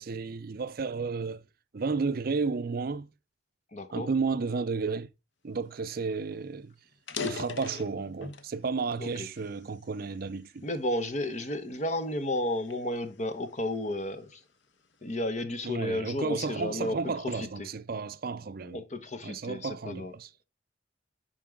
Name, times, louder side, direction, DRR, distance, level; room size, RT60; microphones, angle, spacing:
voice 1, 0.0-1.4 1.7-3.1 3.9-5.1 5.4-6.7 7.2-10.7 15.6-18.8 19.2-20.3, right 4 dB, 55° right, 0.5 m, -32 dB
voice 2, 3.7-4.1 9.0-9.3 10.6-14.4 15.0-17.0 17.2-17.7 18.6-20.1, left 1 dB, 40° left, 1.1 m, -32 dB
sound 1, 5.9-6.0 6.3-6.4 6.9-8.5 9.1-10.4 10.9-11.2 11.8-13.9, left 5 dB, 80° left, 1.0 m, -40 dB
10.5 x 4.6 x 3.6 m
head